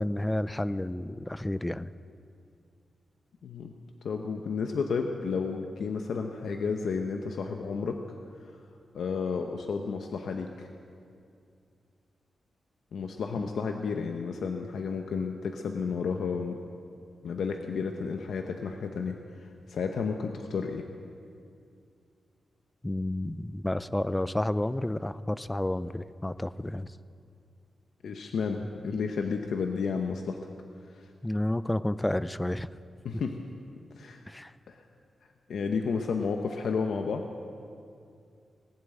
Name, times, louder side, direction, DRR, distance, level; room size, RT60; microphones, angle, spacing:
voice 1, 0.0-1.9 13.4-13.5 22.8-27.0 31.2-32.7 34.3-34.5, left 1 dB, 10° left, 15 dB, 0.3 m, -30 dB
voice 2, 3.4-3.7 4.0-8.0 8.9-10.7 12.9-16.6 17.2-20.8 28.0-30.4 31.0-31.1 33.0-33.5 34.0-34.2 34.7-34.8 35.5-37.2, left 5 dB, 80° left, 4 dB, 0.8 m, -32 dB
19.5 x 7.4 x 9.1 m, 2.4 s
wide cardioid pair, 165°, 0 cm